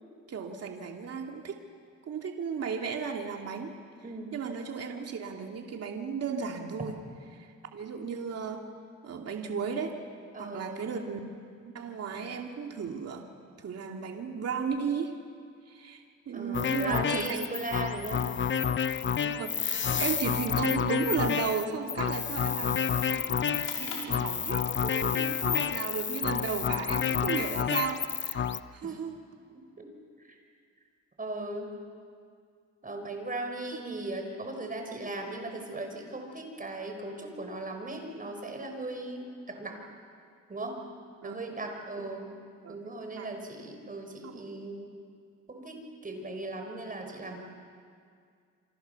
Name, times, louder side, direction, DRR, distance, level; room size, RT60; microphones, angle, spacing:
voice 1, 0.3-1.6 2.1-3.8 4.3-7.0 7.3-8.6 9.0-10.0 10.4-11.2 11.6-13.3 13.6-15.1 15.7-17.5 19.2-29.2 33.7-33.8 41.2-41.3 42.0-42.1 42.6-42.9 43.2-43.3 44.2-44.5, right 6 dB, 55° right, 2 dB, 2.6 m, -35 dB
voice 2, 4.0-4.4 10.3-11.0 16.3-18.3 28.8-29.0 29.8-29.9 30.3-30.4 31.2-31.7 32.8-39.8 40.5-40.8 41.2-42.3 42.7-44.9 45.5-47.4, right 2 dB, 25° right, 4 dB, 5.8 m, -38 dB
sound 1, 16.5-28.6, left 7 dB, 40° left, 0.8 m, -29 dB
sound 2, 23.6-25.0, left 4 dB, 85° left, 5.5 m, -44 dB
28.5 x 26.0 x 7.1 m, 2.2 s
cardioid pair, 90°, 30 cm